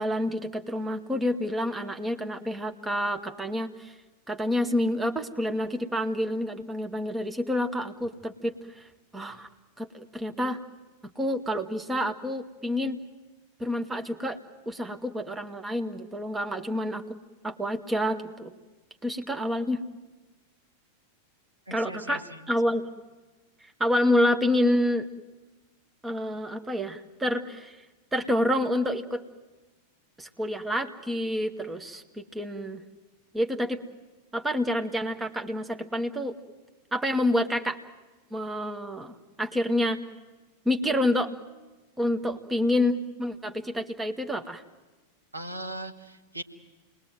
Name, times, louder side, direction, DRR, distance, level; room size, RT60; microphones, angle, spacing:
voice 1, 0.0-4.0 4.3-8.9 9.1-9.5 9.8-10.6 11.2-13.0 13.6-14.4 14.7-17.0 17.4-18.5 19.0-19.8 21.7-22.8 23.8-25.1 26.0-27.9 28.1-29.2 30.2-32.8 33.3-33.8 34.3-36.3 36.9-37.8 38.3-40.0 40.7-41.3 42.0-44.6, left 1 dB, 10° right, 6 dB, 1.8 m, -28 dB
voice 2, 21.7-22.4 45.3-46.4, right 1 dB, 85° right, 5 dB, 2.0 m, -38 dB
29.0 x 21.5 x 9.2 m, 1.2 s
figure-of-eight pair, 90°, 0 cm